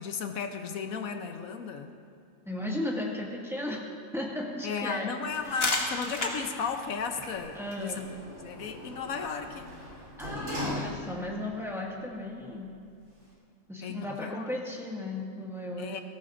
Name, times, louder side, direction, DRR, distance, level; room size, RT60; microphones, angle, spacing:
voice 1, 0.0-1.9 4.6-8.1 8.4-9.7 13.8-14.5 15.8-16.0, left 5 dB, 80° left, 6 dB, 1.3 m, -34 dB
voice 2, 2.5-5.2 5.4-5.8 7.5-8.2 10.2-12.7 13.7-15.9, left 1 dB, ahead, -3 dB, 1.8 m, -35 dB
sound 1, 5.3-10.8, left 2 dB, 45° left, 2.0 m, -37 dB
Sliding door, 7.4-11.5 11.9-12.0, left 1 dB, 65° right, 4.2 m, -39 dB
20.5 x 17.5 x 2.6 m, 2.4 s
omnidirectional pair, 1.5 m